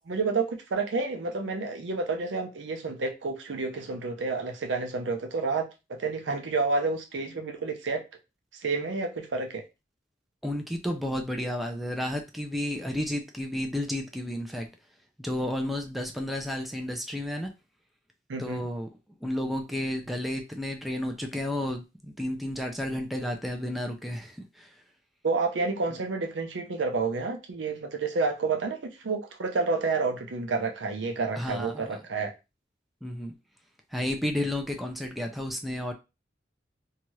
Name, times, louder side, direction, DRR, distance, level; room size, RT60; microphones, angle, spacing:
voice 1, 0.1-5.7 6.0-8.0 8.5-9.6 18.3-18.7 25.2-32.3, right 4 dB, 90° right, 0.6 m, -29 dB
voice 2, 10.4-14.7 15.2-17.5 18.4-18.9 19.2-24.7 31.4-32.0 33.0-33.3 33.9-35.9, left 1 dB, ahead, 0.3 m, -32 dB
2.8 x 2.3 x 3.0 m
head